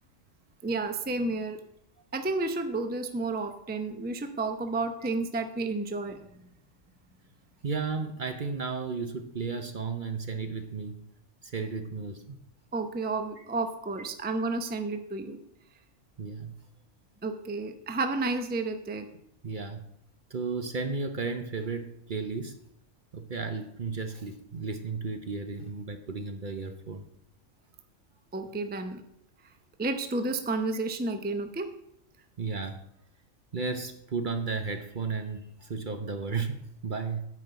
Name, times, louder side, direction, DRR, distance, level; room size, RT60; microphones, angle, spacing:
voice 1, 0.6-1.6 2.1-6.2 12.7-15.4 17.2-19.1 28.3-29.0 29.8-31.7, right 3 dB, 10° right, 7 dB, 0.6 m, -31 dB
voice 2, 7.6-11.0 11.4-12.4 13.4-13.5 16.2-16.6 19.4-19.8 20.3-22.5 23.1-27.1 32.4-32.8 33.5-37.3, right 4 dB, 45° right, 7 dB, 0.8 m, -34 dB
9.5 x 5.3 x 7.9 m, 0.74 s
omnidirectional pair, 1.3 m